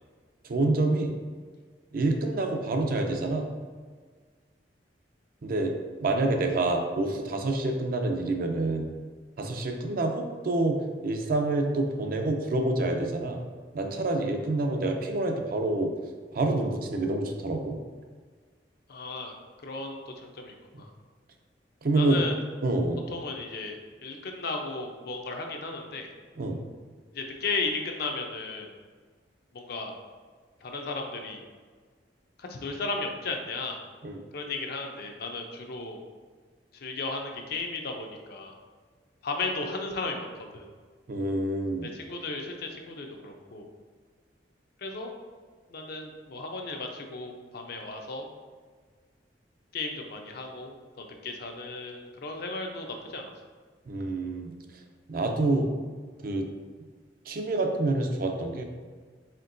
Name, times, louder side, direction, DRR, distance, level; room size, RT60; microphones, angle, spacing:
voice 1, 0.4-1.1 1.9-3.5 5.4-5.7 6.0-8.9 9.4-13.4 13.7-15.9 16.3-17.8 21.8-22.2 22.6-23.0 26.4-26.6 34.0-34.2 41.1-41.9 53.9-54.5 55.1-55.7 56.2-56.5 57.3-58.6, right 2 dB, 55° right, 3 dB, 0.5 m, -27 dB
voice 2, 18.9-19.3 19.6-20.9 21.9-22.4 23.1-26.1 27.1-28.7 29.5-29.9 30.6-31.4 32.4-33.8 34.3-36.0 36.7-38.6 39.2-40.7 41.8-43.7 44.8-45.1 45.7-48.3 49.7-53.3, left 3 dB, 60° left, 3 dB, 0.5 m, -35 dB
4.4 x 3.6 x 2.6 m, 1.5 s
head